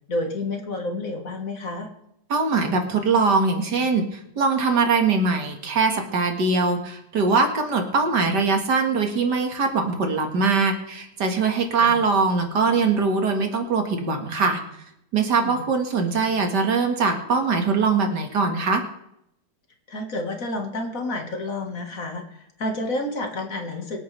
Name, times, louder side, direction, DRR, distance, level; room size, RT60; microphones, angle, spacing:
voice 1, 0.1-1.9 11.8-12.0 15.4-15.7 19.9-24.0, left 2 dB, 50° left, 4 dB, 2.1 m, -30 dB
voice 2, 2.3-14.6 15.1-18.8, right 4 dB, 70° right, 4 dB, 2.3 m, -22 dB
25.0 x 8.6 x 3.4 m, 0.78 s
omnidirectional pair, 1.9 m